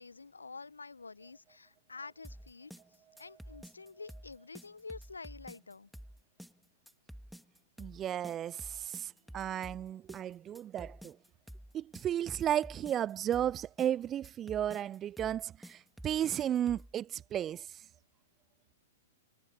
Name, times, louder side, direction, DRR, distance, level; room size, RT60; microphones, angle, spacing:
voice 1, 0.0-5.9, left 4 dB, 75° left, 1.0 m, -48 dB
sound 1, 2.2-16.9, equal, ahead, 3.0 m, -50 dB
voice 2, 7.8-11.2 11.7-15.8 16.0-17.6, right 10 dB, 25° right, 0.3 m, -34 dB
figure-of-eight pair, 105°, 0 cm